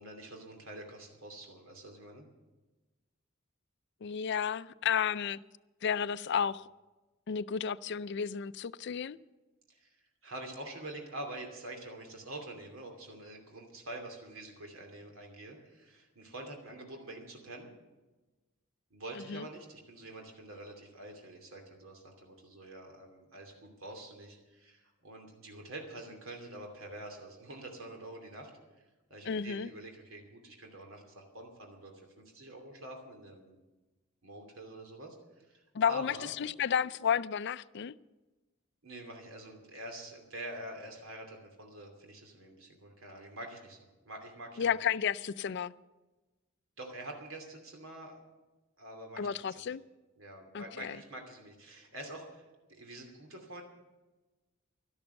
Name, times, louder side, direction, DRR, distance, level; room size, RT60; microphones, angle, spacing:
voice 1, 0.0-2.3 9.7-9.9 10.2-17.7 18.9-28.5 29.1-33.6 34.2-36.3 38.8-43.8 44.0-44.7 46.8-48.2 48.8-49.7 50.2-53.6, right 1 dB, 85° right, 2.7 m, -46 dB
voice 2, 4.0-5.4 5.8-6.7 7.3-9.2 19.3-19.4 29.3-29.7 35.7-37.9 44.6-45.7 49.2-49.8 50.5-51.0, left 7 dB, 55° left, 0.4 m, -32 dB
12.5 x 12.5 x 6.9 m
head